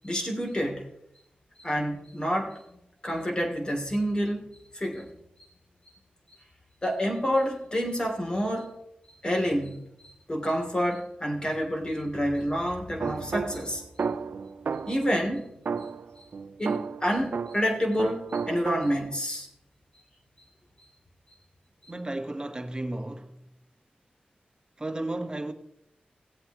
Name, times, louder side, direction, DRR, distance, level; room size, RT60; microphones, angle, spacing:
voice 1, 0.0-0.9 1.6-5.1 6.8-8.8 9.2-9.8 10.0-13.8 14.8-15.5 15.8-15.9 16.2-16.3 16.6-19.5, equal, 25° left, 2.9 m, -28 dB
sound 1, 13.0-15.1 15.6-17.7 18.0-19.2, right 5 dB, 70° right, 0.5 m, -33 dB
voice 2, 21.9-23.4 24.8-25.5, right 1 dB, 25° right, 1.3 m, -33 dB
18.0 x 8.1 x 3.0 m
cardioid pair, 55°, 3 cm